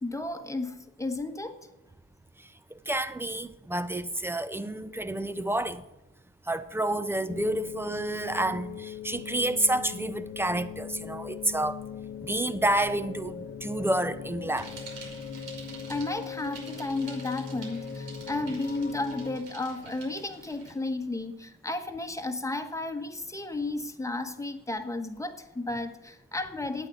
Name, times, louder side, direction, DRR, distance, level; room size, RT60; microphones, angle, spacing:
voice 1, 0.0-1.6 15.9-26.9, left 2 dB, 10° left, 1.3 m, -33 dB
voice 2, 2.9-5.8 6.5-11.8 12.2-14.7, right 1 dB, 10° right, 0.7 m, -29 dB
sound 1, 7.3-19.4, left 7 dB, 35° left, 1.1 m, -40 dB
Bicycle, 14.6-20.7, right 4 dB, 80° right, 5.4 m, -48 dB
9.1 x 8.8 x 8.2 m
cardioid pair, 90°, 30 cm